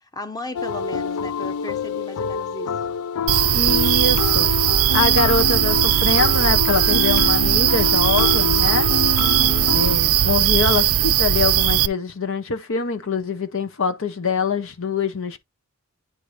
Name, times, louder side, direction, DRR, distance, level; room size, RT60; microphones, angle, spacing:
voice 1, 0.0-2.8 9.2-9.9, left 1 dB, 15° left, 1.0 m, -35 dB
sound 1, 0.5-10.0, left 7 dB, 80° left, 0.4 m, -27 dB
sound 2, 3.3-11.9, right 12 dB, 75° right, 0.5 m, -18 dB
voice 2, 3.5-4.5 4.9-8.9 9.7-15.4, left 4 dB, 60° left, 0.7 m, -24 dB
9.8 x 4.7 x 2.5 m
head